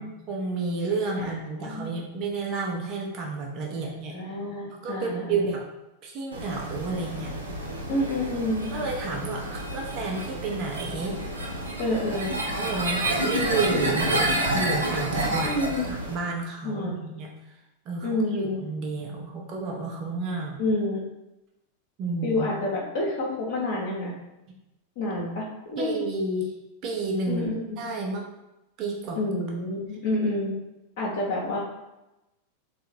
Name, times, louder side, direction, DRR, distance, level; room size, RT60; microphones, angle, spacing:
voice 1, 0.0-4.2 4.7-5.7 6.0-7.3 8.7-11.2 12.6-14.2 14.5-15.5 15.9-17.3 17.9-18.1 18.4-20.6 22.0-22.6 25.8-26.5 26.8-27.5 27.8-28.2 28.8-29.2, right 3 dB, 35° right, -1 dB, 0.7 m, -31 dB
voice 2, 1.6-2.0 4.1-5.5 7.9-8.7 11.8-12.3 15.4-15.9 16.6-16.9 18.0-18.6 20.6-21.0 22.2-24.1 25.0-26.0 27.3-27.8 29.1-30.5 31.0-31.6, left 1 dB, 50° left, -5 dB, 1.0 m, -28 dB
sound 1, 6.3-16.2, right 1 dB, 75° right, 0.9 m, -29 dB
3.7 x 2.5 x 4.4 m, 0.95 s
figure-of-eight pair, 90°, 0 cm